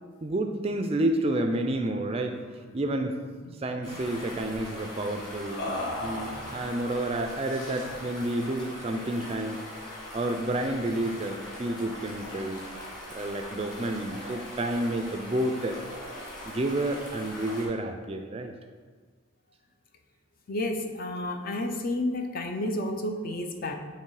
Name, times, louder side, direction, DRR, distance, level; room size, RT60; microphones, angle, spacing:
voice 1, 0.2-2.4 2.7-3.2 3.6-5.7 6.0-9.6 10.1-12.6 13.1-15.8 16.4-18.5, right 1 dB, 30° right, 5 dB, 0.4 m, -30 dB
sound 1, 2.2-2.4 2.7-2.9 3.2-4.0 5.6-6.8 7.5-8.1, left 1 dB, 70° left, 1.1 m, -37 dB
sound 2, 3.8-17.7, left 1 dB, 20° left, 1.5 m, -41 dB
voice 2, 20.5-23.7, left 1 dB, 45° left, 4 dB, 0.5 m, -31 dB
6.7 x 3.2 x 4.7 m, 1.5 s
head